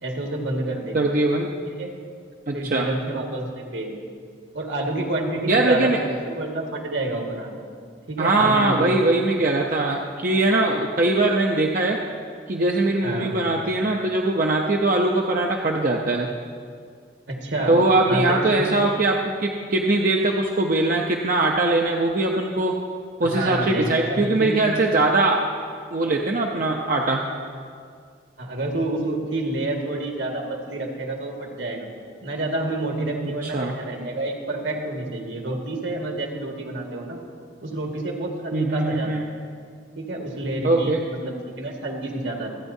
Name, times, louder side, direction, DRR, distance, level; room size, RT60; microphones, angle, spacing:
voice 1, 0.0-1.0 1.6-1.9 2.5-3.9 4.5-7.5 8.1-9.3 13.0-13.5 17.3-17.8 18.1-18.7 23.2-24.6 28.4-31.9 32.2-37.2 37.6-39.2 39.9-42.5, right 2 dB, 70° right, 0 dB, 1.7 m, -28 dB
voice 2, 0.9-1.5 2.5-2.9 5.5-6.0 8.2-12.0 12.5-16.3 17.7-22.7 23.2-25.4 25.9-27.2 33.4-33.7 38.5-39.2 40.6-41.0, right 2 dB, 45° right, 0 dB, 0.6 m, -21 dB
26.0 x 8.8 x 2.7 m, 2.2 s
head